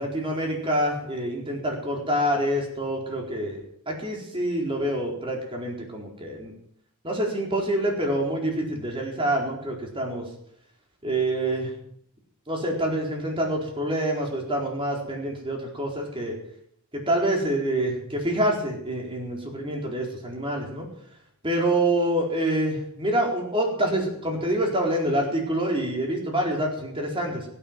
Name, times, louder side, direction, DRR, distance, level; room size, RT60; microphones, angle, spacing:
voice 1, 0.0-6.5 7.0-10.2 11.0-11.7 12.5-16.3 16.9-20.9 21.4-27.5, right 1 dB, 25° right, 0 dB, 4.2 m, -26 dB
23.0 x 9.1 x 6.1 m, 0.70 s
head